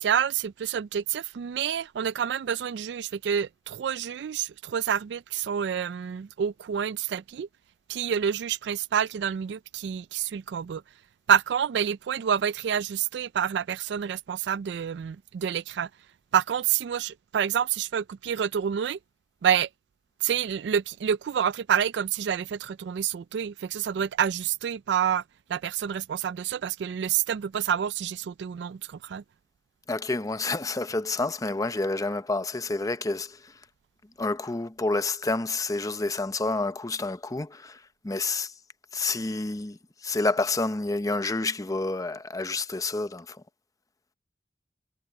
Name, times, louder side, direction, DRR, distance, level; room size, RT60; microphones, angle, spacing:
voice 1, 0.0-7.5 7.9-10.8 11.3-15.9 16.3-19.0 19.4-19.7 20.2-25.2 25.5-29.2, right 8 dB, 75° right, 0.3 m, -28 dB
voice 2, 29.9-33.5 34.2-38.5 38.9-43.4, left 3 dB, 20° left, 0.7 m, -29 dB
head